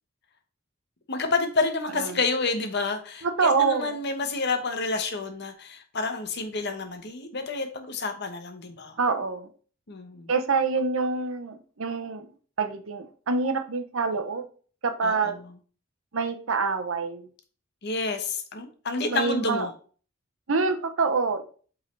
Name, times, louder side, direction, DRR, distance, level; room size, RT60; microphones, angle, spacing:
voice 1, 1.1-8.9 9.9-10.3 15.0-15.3 17.8-19.7, left 3 dB, 55° left, 6 dB, 1.0 m, -29 dB
voice 2, 3.2-4.0 9.0-9.5 10.3-12.3 12.6-14.4 14.8-15.4 16.1-17.3 18.9-19.7 20.5-21.4, right 4 dB, 80° right, 8 dB, 0.8 m, -26 dB
8.2 x 3.7 x 3.3 m, 0.42 s
head